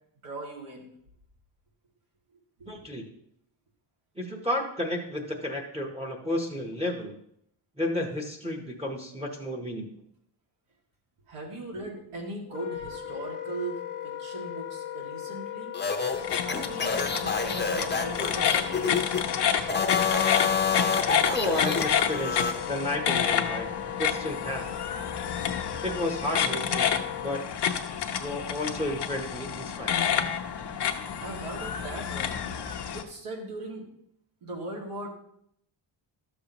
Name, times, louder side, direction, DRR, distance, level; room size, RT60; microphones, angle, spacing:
voice 1, 0.2-0.9 2.6-2.7 11.3-15.8 16.2-19.4 31.2-32.4 32.9-33.9 34.4-35.2, right 2 dB, 85° right, -1 dB, 2.2 m, -39 dB
voice 2, 2.7-3.1 4.2-7.2 7.8-9.9 21.3-23.7 24.0-24.8 25.8-26.9 27.2-27.5 28.2-30.1, left 1 dB, 10° right, -1 dB, 0.8 m, -32 dB
Wind instrument woodwind instrument, 12.5-27.4, left 10 dB, 80° left, 1.0 m, -38 dB
sound 1, 15.7-19.2 19.6-22.5, left 5 dB, 20° left, 0.7 m, -28 dB
sound 2, 16.1-33.0, left 8 dB, 55° left, 0.7 m, -29 dB
12.5 x 6.8 x 2.9 m, 0.71 s
wide cardioid pair, 165°, 49 cm